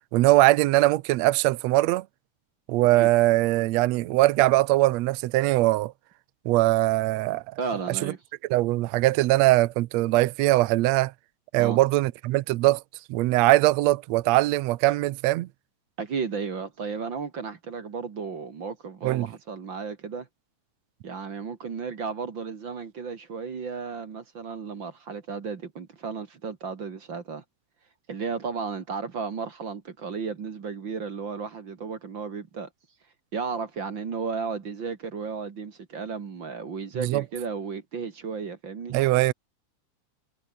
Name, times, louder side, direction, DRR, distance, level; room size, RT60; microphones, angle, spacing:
voice 1, 0.1-2.0 2.7-5.9 6.4-7.4 8.0-8.1 8.5-11.1 11.5-12.8 13.1-15.5 19.0-19.3 37.0-37.2 38.9-39.3, right 18 dB, 75° right, 1.6 m, -21 dB
voice 2, 7.6-8.2 11.6-11.8 16.0-20.3 21.0-27.4 28.1-32.7 33.3-38.9, right 5 dB, 40° right, 2.2 m, -34 dB
omnidirectional pair, 3.7 m